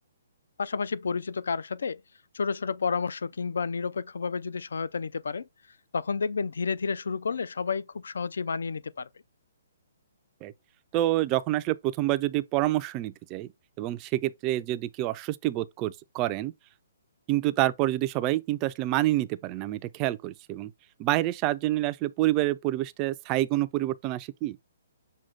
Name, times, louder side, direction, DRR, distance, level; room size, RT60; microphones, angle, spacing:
voice 1, 0.6-2.0 2.3-5.4 5.9-9.1, left 5 dB, 85° left, 0.4 m, -30 dB
voice 2, 10.9-13.5 13.8-16.5 17.3-20.7 21.0-24.6, right 16 dB, 20° right, 0.3 m, -27 dB
6.2 x 2.2 x 3.8 m
hypercardioid pair, 170°, 0 cm